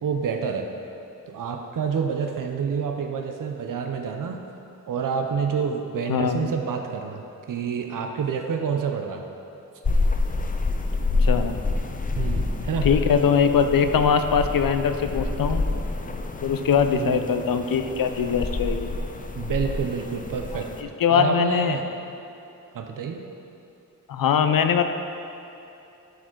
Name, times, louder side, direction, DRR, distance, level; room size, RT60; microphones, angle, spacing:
voice 1, 0.0-0.7 1.3-4.4 4.9-9.2 12.2-12.9 16.9-17.3 19.3-20.7 21.1-21.9 22.7-23.2, right 6 dB, 70° right, 4 dB, 0.6 m, -28 dB
voice 2, 6.1-6.5 11.2-11.5 12.8-15.6 16.4-18.9 20.5-20.6 21.0-21.8 24.1-24.8, left 7 dB, 85° left, 8 dB, 0.5 m, -21 dB
sound 1, 9.8-20.8, left 3 dB, 25° left, 0.4 m, -27 dB
11.5 x 5.1 x 3.8 m, 2.8 s
wide cardioid pair, 125°, 34 cm